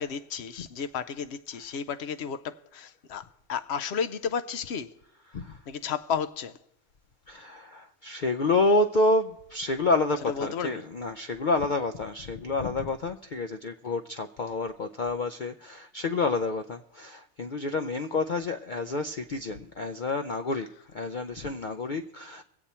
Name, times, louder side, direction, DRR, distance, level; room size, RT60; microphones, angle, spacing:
voice 1, 0.0-3.2 3.5-4.9 5.7-6.6 10.3-10.8, left 7 dB, 60° left, 0.8 m, -32 dB
voice 2, 5.3-5.6 7.3-20.7 20.9-22.4, left 2 dB, 75° left, 0.4 m, -29 dB
23.0 x 8.1 x 4.3 m
omnidirectional pair, 1.5 m